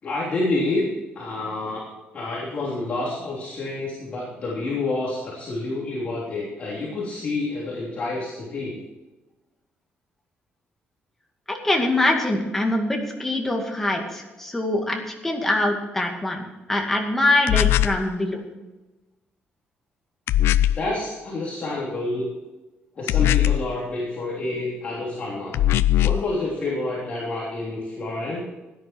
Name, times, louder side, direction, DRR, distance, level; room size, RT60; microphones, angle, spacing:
voice 1, 0.0-0.9 1.1-1.8 2.1-8.8 20.7-22.3 22.9-25.6 26.0-28.4, left 2 dB, 35° left, -5 dB, 3.2 m, -28 dB
voice 2, 11.5-18.4, left 1 dB, 5° left, 1 dB, 2.2 m, -24 dB
sound 1, 17.5-18.0 20.3-20.9 23.1-23.7 25.5-26.3, left 13 dB, 85° left, 0.4 m, -20 dB
16.5 x 10.5 x 4.6 m, 1.1 s
cardioid pair, 170°, 4 cm